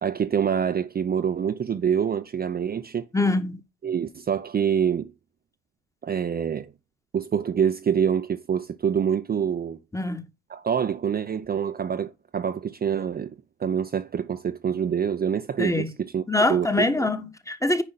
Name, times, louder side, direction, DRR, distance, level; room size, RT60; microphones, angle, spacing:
voice 1, 0.0-3.1 3.8-5.1 6.0-6.7 7.1-9.8 10.5-13.3 13.6-16.2 16.5-17.1, right 8 dB, 25° right, 0.7 m, -26 dB
voice 2, 3.1-3.6 9.9-10.3 15.6-15.9 16.3-17.8, left 2 dB, 10° left, 1.3 m, -24 dB
9.9 x 5.0 x 4.1 m
hypercardioid pair, 75°, 36 cm